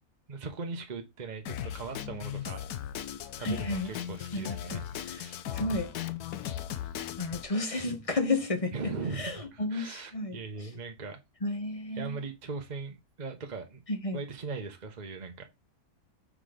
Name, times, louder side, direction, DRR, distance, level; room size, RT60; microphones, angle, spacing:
voice 1, 0.3-2.6 3.4-4.8 5.2-5.4 8.7-11.2 11.9-13.8 14.1-15.5, right 4 dB, 35° right, 0.9 m, -39 dB
Drum kit, 1.5-7.4, left 10 dB, 80° left, 1.2 m, -37 dB
voice 2, 3.4-3.9 4.3-5.3 5.5-5.9 7.2-8.7 9.1-10.4 11.4-12.2 13.9-14.2, left 2 dB, 25° left, 1.2 m, -32 dB
6.2 x 4.1 x 5.0 m
omnidirectional pair, 1.6 m